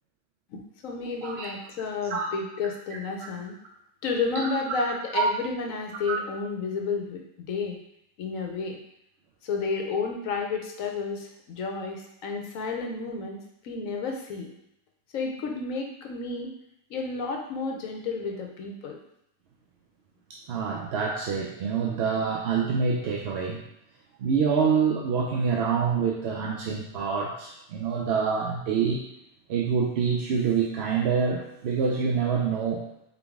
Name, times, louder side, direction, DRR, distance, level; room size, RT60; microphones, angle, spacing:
voice 1, 0.5-3.6 4.0-7.2 7.5-7.8 8.2-8.8 9.4-14.5 15.1-16.6 16.9-19.0, left 4 dB, 70° left, 2 dB, 1.1 m, -31 dB
voice 2, 20.3-23.6 24.2-29.0 29.5-32.9, right 6 dB, 60° right, -2 dB, 0.7 m, -26 dB
3.8 x 3.5 x 3.5 m, 0.81 s
omnidirectional pair, 1.5 m